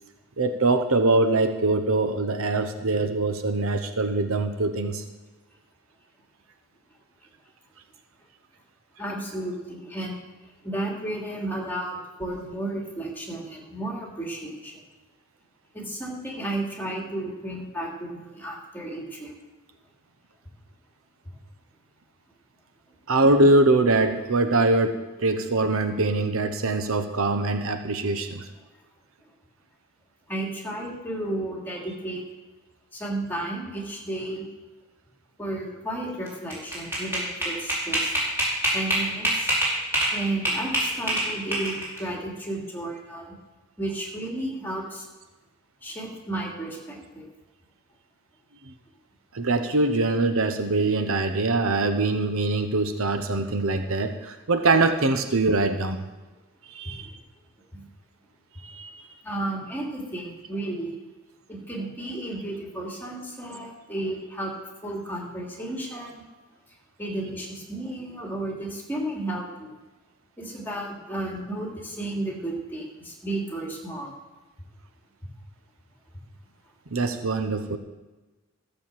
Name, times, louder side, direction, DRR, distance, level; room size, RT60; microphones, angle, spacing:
voice 1, 0.4-5.0 23.1-28.5 48.7-48.8 49.3-56.1 56.7-57.1 58.6-58.9 76.9-77.8, right 2 dB, 65° right, 8 dB, 1.0 m, -23 dB
voice 2, 9.0-10.2 10.6-14.7 15.7-19.3 28.0-28.1 30.3-32.2 32.9-34.5 35.4-38.1 38.7-39.5 40.1-43.3 43.8-45.0 45.8-47.3 56.9-57.1 57.7-57.8 59.2-60.9 61.5-64.5 64.8-66.2 67.0-69.7 70.4-74.1, right 1 dB, 10° left, -2 dB, 2.8 m, -33 dB
sound 1, 36.3-40.1 40.4-42.0, right 1 dB, 10° right, 5.1 m, -24 dB
15.0 x 6.7 x 7.5 m, 1.2 s
head